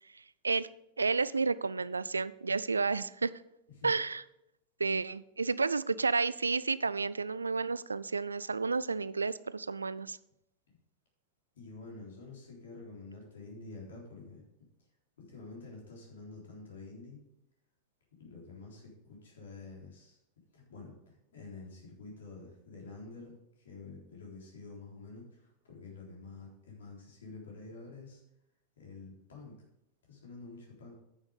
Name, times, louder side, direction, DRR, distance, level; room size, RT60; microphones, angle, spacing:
voice 1, 1.0-3.3 3.8-4.2 4.8-10.2, right 4 dB, 75° right, 18 dB, 0.3 m, -31 dB
voice 2, 11.5-14.4 15.2-17.2 18.2-20.2 20.5-23.3 23.6-28.2 28.8-29.5 30.1-30.9, left 3 dB, 65° left, -2 dB, 3.7 m, -48 dB
9.5 x 7.0 x 5.1 m, 0.82 s
figure-of-eight pair, 90°, 0 cm